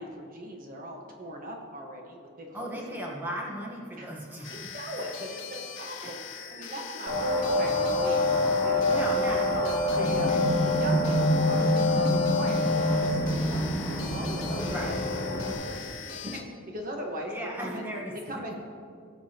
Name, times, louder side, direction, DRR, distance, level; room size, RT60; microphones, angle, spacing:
voice 1, 0.0-3.1 4.0-4.1 4.5-6.2 6.5-8.2 8.6-9.1 9.6-10.4 10.6-15.0 15.3-17.8 18.1-18.5, right 1 dB, 40° right, 1 dB, 1.3 m, -40 dB
voice 2, 2.5-4.7 6.0-6.1 8.9-10.4 14.6-14.9 17.3-18.5, equal, 10° right, -3 dB, 1.2 m, -37 dB
sound 1, 4.4-16.4, left 7 dB, 65° left, 1.4 m, -41 dB
sound 2, 7.1-15.5, left 1 dB, 60° right, 2.5 m, -25 dB
18.5 x 7.1 x 2.9 m, 2.2 s
head